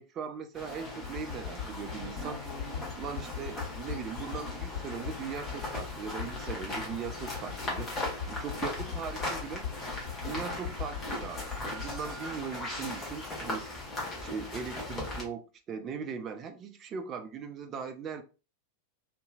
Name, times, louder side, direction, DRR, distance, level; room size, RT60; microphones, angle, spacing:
voice 1, 0.0-2.4 3.0-7.9 8.3-9.7 10.2-13.6 14.2-18.2, right 6 dB, 30° right, 0.3 m, -39 dB
sound 1, 0.5-15.2, left 2 dB, 20° left, 1.0 m, -38 dB
sound 2, 1.0-13.6, left 8 dB, 50° left, 1.6 m, -41 dB
2.7 x 2.5 x 2.2 m
figure-of-eight pair, 90°, 0 cm